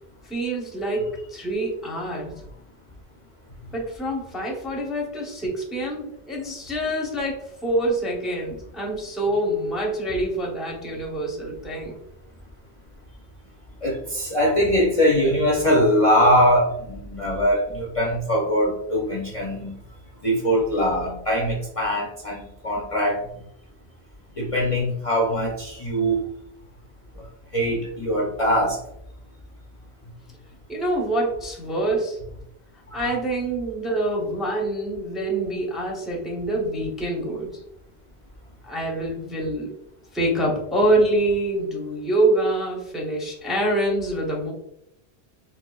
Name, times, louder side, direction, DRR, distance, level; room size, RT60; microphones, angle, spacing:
voice 1, 0.2-2.3 3.7-12.0 30.7-32.2 32.9-37.6 38.6-39.7 40.1-44.5, right 1 dB, ahead, -1 dB, 0.6 m, -25 dB
voice 2, 13.8-19.7 20.2-23.2 24.4-26.2 27.5-28.8 32.9-33.1, equal, 40° left, -3 dB, 0.6 m, -22 dB
4.3 x 2.7 x 2.3 m, 0.77 s
omnidirectional pair, 1.1 m